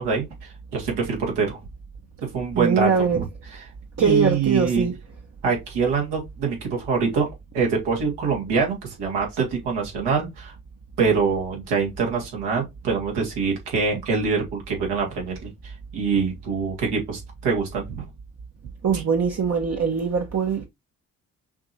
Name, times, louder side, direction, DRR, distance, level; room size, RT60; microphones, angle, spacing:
voice 1, 0.0-1.6 2.2-3.2 3.5-3.6 4.0-4.9 5.4-7.3 7.5-10.5 11.0-18.0 18.9-19.0, right 5 dB, 75° right, 2.2 m, -25 dB
voice 2, 2.6-3.2 4.0-4.9 18.8-20.7, right 6 dB, 40° right, 1.1 m, -22 dB
5.8 x 3.0 x 2.8 m
hypercardioid pair, 45°, 41 cm